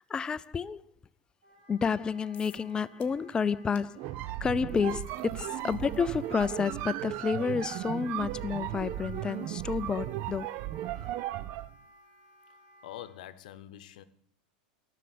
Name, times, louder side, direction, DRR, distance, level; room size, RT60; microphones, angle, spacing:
voice 1, 0.1-0.8 1.7-4.0 4.4-10.6 11.0-11.1, left 6 dB, 20° left, 0.4 m, -30 dB
Wind instrument woodwind instrument, 1.4-13.1, right 1 dB, 80° right, 3.8 m, -57 dB
sound 1, 2.3-2.7 3.0-3.3 3.7-3.9 4.6-11.7, left 10 dB, 35° left, 1.6 m, -60 dB
sound 2, 3.9-11.7, right 14 dB, 50° right, 0.4 m, -36 dB
voice 2, 12.5-14.0, left 12 dB, 75° left, 0.8 m, -46 dB
13.0 x 6.5 x 8.4 m
hypercardioid pair, 115°, 4 cm